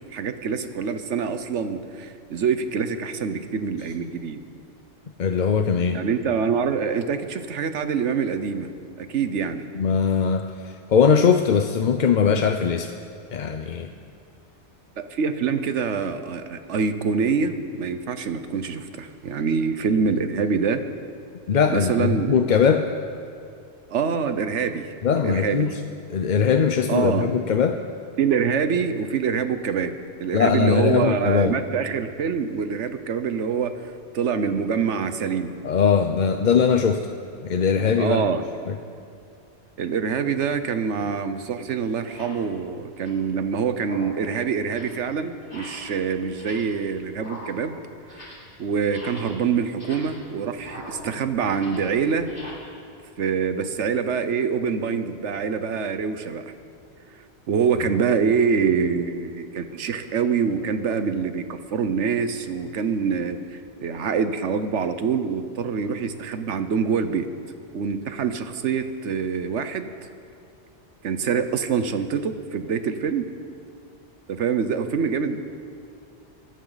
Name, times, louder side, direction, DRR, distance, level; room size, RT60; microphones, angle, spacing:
voice 1, 0.1-4.4 5.9-8.7 9.0-9.7 15.0-20.8 21.7-22.4 23.9-24.9 25.1-25.7 26.9-27.3 28.2-29.9 30.2-33.7 34.1-35.5 38.0-38.4 39.8-47.8 48.1-48.2 48.6-52.3 53.2-56.4 57.5-67.3 67.7-69.9 71.0-73.3 74.3-75.4, right 6 dB, 90° right, 10 dB, 1.2 m, -25 dB
voice 2, 5.2-6.0 9.7-12.9 13.3-13.9 21.5-22.9 25.0-25.8 26.1-27.8 30.3-31.5 35.6-37.1 37.4-38.2 38.7-38.8, left 6 dB, 50° left, 7 dB, 0.7 m, -20 dB
sound 1, 40.5-40.6 41.3-41.4 42.0-42.5 42.8-43.3 43.7-44.3 44.6-45.0 45.4-46.0 46.3-46.8 47.1-48.5 48.8-52.5, left 1 dB, 80° left, 5.5 m, -42 dB
24.5 x 14.0 x 4.0 m, 2.4 s
omnidirectional pair, 1.2 m